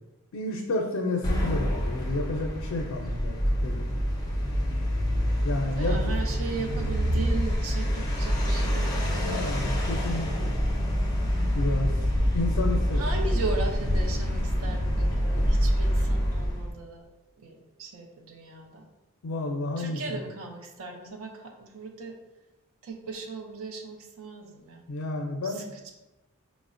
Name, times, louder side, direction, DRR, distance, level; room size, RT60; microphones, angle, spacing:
voice 1, 0.3-3.9 5.4-6.0 9.3-10.5 11.5-12.1 12.3-13.0 19.2-20.2 24.9-25.6, left 2 dB, 85° left, 1 dB, 0.4 m, -31 dB
sound 1, 1.2-16.7, equal, 15° left, 0.4 m, -26 dB
voice 2, 5.8-9.8 12.9-17.1 17.4-18.8 19.8-22.1 22.8-24.8 25.4-25.9, right 3 dB, 80° right, 3 dB, 0.6 m, -37 dB
4.8 x 2.0 x 2.5 m, 1.0 s
head